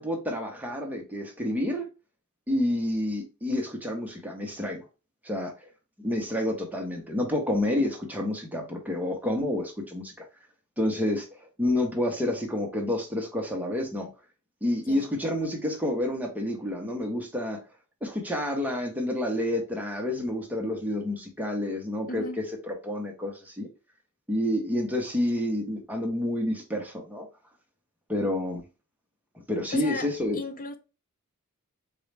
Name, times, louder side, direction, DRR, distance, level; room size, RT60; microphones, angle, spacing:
voice 1, 0.0-1.9 2.5-4.8 5.2-5.5 6.0-10.1 10.8-14.1 14.6-17.6 18.0-23.7 24.3-27.3 28.1-28.6 29.5-30.4, left 1 dB, 10° right, 0.8 m, -29 dB
voice 2, 22.1-22.4 29.7-30.8, left 3 dB, 40° left, 0.5 m, -35 dB
4.0 x 2.3 x 3.2 m
head